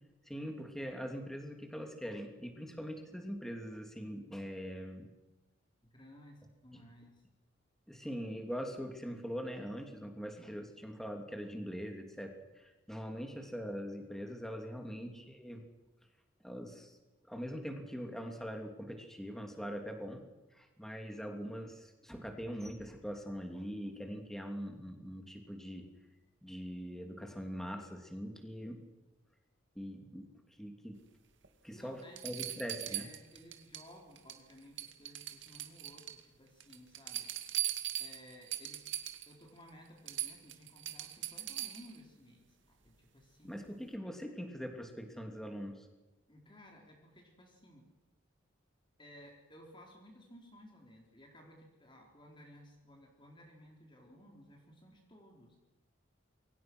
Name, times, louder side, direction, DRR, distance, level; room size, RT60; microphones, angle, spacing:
voice 1, 0.3-5.1 6.7-6.8 7.9-15.6 16.4-17.0 17.3-20.2 20.5-25.9 26.4-28.8 29.7-30.3 30.6-31.0 31.6-33.1 43.4-45.9, equal, ahead, 3 dB, 3.0 m, -42 dB
voice 2, 5.8-7.2 14.8-15.2 31.7-37.3 38.0-38.8 39.3-43.6 46.3-47.8 49.0-55.6, equal, 25° left, 0 dB, 4.2 m, -57 dB
sound 1, 31.4-31.5 32.2-33.9 34.2-34.5 34.8-36.2 36.6-39.3 39.7-39.8 40.1-42.0 43.7-43.8, right 13 dB, 65° right, 2.3 m, -40 dB
28.5 x 23.5 x 6.3 m, 1.1 s
head